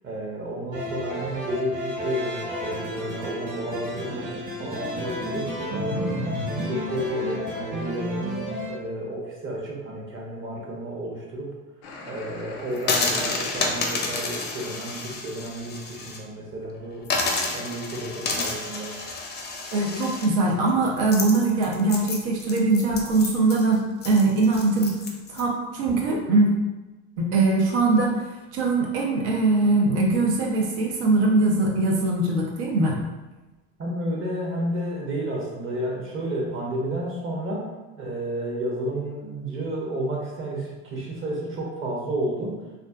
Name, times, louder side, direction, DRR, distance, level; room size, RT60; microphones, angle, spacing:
voice 1, 0.0-6.2 6.7-11.5 12.0-17.1 17.5-18.9 33.8-37.7 38.0-42.6, right 1 dB, 40° right, -2 dB, 0.8 m, -31 dB
sound 1, 0.7-8.7, equal, 60° right, 1.3 m, -31 dB
sound 2, 11.8-14.7, left 3 dB, 85° left, 0.5 m, -42 dB
sound 3, 12.8-16.2 16.5-16.6 17.0-25.4, left 3 dB, 30° left, 0.5 m, -30 dB
voice 2, 19.7-25.0 25.3-26.6 27.2-28.2 28.5-33.0, right 2 dB, 80° right, -1 dB, 0.6 m, -22 dB
2.5 x 2.3 x 2.2 m, 1.1 s
supercardioid pair, 85°, 33 cm